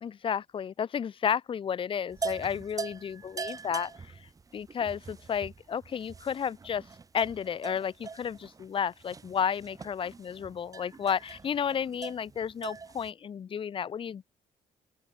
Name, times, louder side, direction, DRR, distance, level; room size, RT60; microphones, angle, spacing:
voice 1, 0.0-3.9 4.5-6.8 7.1-14.3, left 7 dB, 35° left, 1.1 m, -32 dB
sound 1, 2.1-13.1, right 4 dB, 25° right, 1.8 m, -42 dB
open air
cardioid pair, 155°, 15 cm